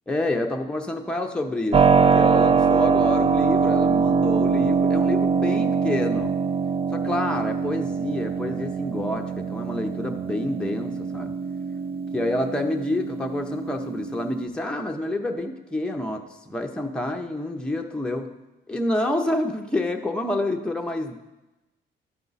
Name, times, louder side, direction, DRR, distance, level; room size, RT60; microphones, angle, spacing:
voice 1, 0.1-6.4 6.9-11.4 12.1-18.3 18.7-21.1, left 1 dB, 5° left, 2 dB, 0.7 m, -28 dB
Keyboard (musical), 1.7-14.5, right 5 dB, 30° right, 0.4 m, -23 dB
12.5 x 4.5 x 4.1 m, 1.0 s
cardioid pair, 90°, 20 cm